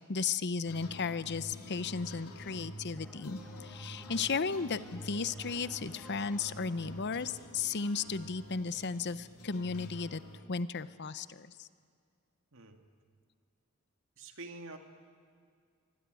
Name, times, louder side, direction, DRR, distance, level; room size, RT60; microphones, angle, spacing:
voice 1, 0.1-10.2 10.5-11.7, left 5 dB, 50° left, 15 dB, 0.8 m, -35 dB
sound 1, 0.7-10.4, left 1 dB, 85° left, 2.8 m, -48 dB
sound 2, 3.0-8.4, right 1 dB, 5° left, 1.6 m, -55 dB
voice 2, 12.5-12.9 14.2-14.8, right 2 dB, 60° right, 5 dB, 2.3 m, -46 dB
25.0 x 24.0 x 9.3 m, 2.2 s
head